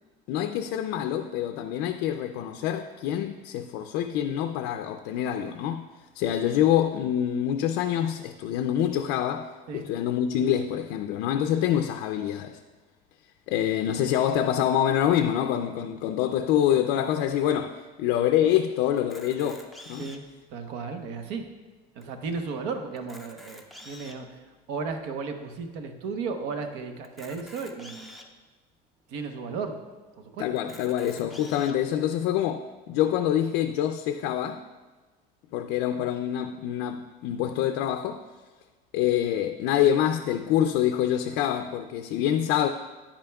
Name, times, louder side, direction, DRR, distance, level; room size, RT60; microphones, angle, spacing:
voice 1, 0.3-12.6 13.5-20.1 30.4-34.6 35.5-38.2 38.9-42.7, left 10 dB, 70° left, 0.4 m, -26 dB
Camera, 19.0-20.4 21.0-21.1 21.3-21.5 22.0-22.1 22.9-24.3 24.9-25.0 27.0-28.3 29.0-29.1 29.4-29.5 30.6-31.7, left 1 dB, ahead, 0.4 m, -47 dB
voice 2, 20.5-21.5 21.9-24.4 24.7-28.1 29.1-29.8 30.2-30.4, right 4 dB, 80° right, 0.9 m, -34 dB
9.9 x 8.8 x 2.3 m
cardioid pair, 180°, 18 cm